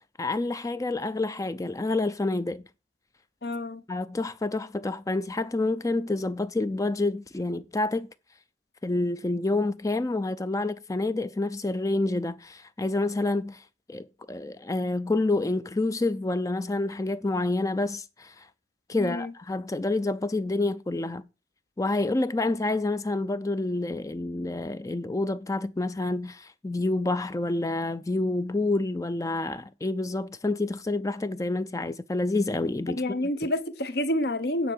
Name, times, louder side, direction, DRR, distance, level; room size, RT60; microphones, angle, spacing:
voice 1, 0.2-2.6 3.9-8.1 8.8-13.6 13.9-18.5 18.9-21.2 21.8-33.0, left 2 dB, 20° left, 0.4 m, -28 dB
voice 2, 3.4-3.8 18.9-19.3 33.0-34.7, left 1 dB, 55° left, 1.0 m, -28 dB
9.5 x 4.5 x 7.1 m
head